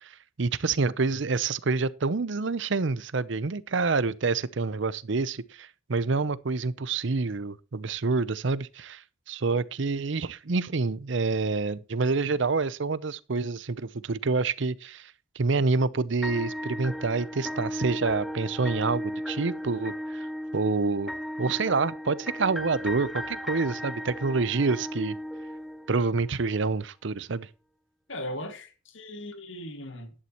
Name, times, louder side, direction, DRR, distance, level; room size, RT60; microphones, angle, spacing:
voice 1, 0.0-20.3 20.5-21.1 21.4-25.2 25.9-27.5, right 4 dB, 65° right, 0.7 m, -27 dB
sound 1, 16.2-26.3, equal, ahead, 0.5 m, -36 dB
voice 2, 28.1-30.1, left 1 dB, 65° left, 2.1 m, -38 dB
11.5 x 11.5 x 3.0 m
head